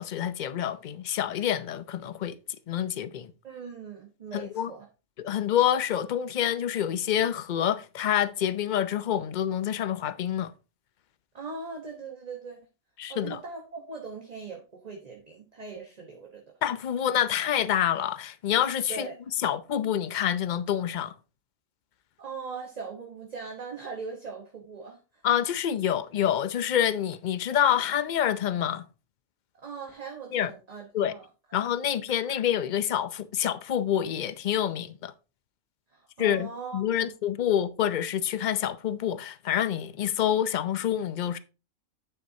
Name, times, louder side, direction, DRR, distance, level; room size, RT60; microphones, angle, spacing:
voice 1, 0.0-2.4 2.7-3.3 4.3-4.7 5.2-10.5 13.0-13.4 16.6-19.1 19.4-21.1 25.2-28.9 30.3-30.5 30.9-31.1 31.5-35.1 36.2-41.4, left 10 dB, 55° left, 0.5 m, -27 dB
voice 2, 3.4-4.9 11.3-12.6 13.1-16.4 18.9-19.2 22.2-25.2 29.6-31.3 35.9-37.1, right 4 dB, 30° right, 1.2 m, -40 dB
9.3 x 7.2 x 2.8 m
omnidirectional pair, 1.4 m